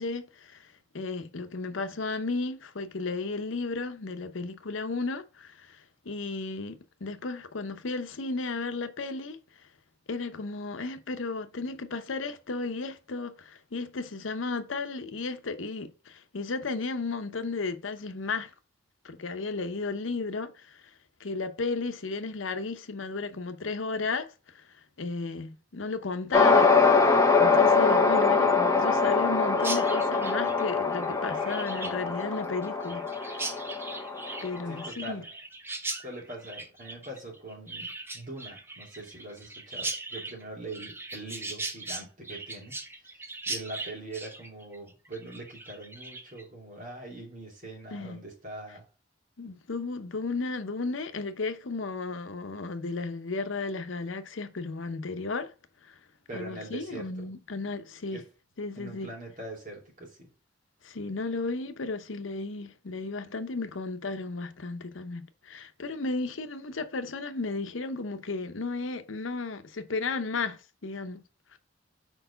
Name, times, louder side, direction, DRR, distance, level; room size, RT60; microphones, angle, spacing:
voice 1, 0.0-6.8 7.0-9.4 10.1-18.5 19.0-20.8 21.2-24.3 24.5-24.6 25.0-26.7 27.4-33.6 34.4-35.2 47.9-48.2 49.4-55.5 55.8-56.0 56.3-58.2 58.6-59.1 60.8-71.2 71.5-71.6, left 3 dB, 85° left, 0.8 m, -34 dB
sound 1, 26.3-34.9, left 4 dB, 15° left, 0.8 m, -23 dB
Chirp tweet, 29.6-46.4, right 2 dB, 10° right, 0.8 m, -39 dB
voice 2, 34.7-35.3 36.0-43.2 43.5-48.9 56.3-57.2 58.1-58.2 58.7-60.3, right 2 dB, 45° right, 2.9 m, -42 dB
4.7 x 4.6 x 5.6 m
head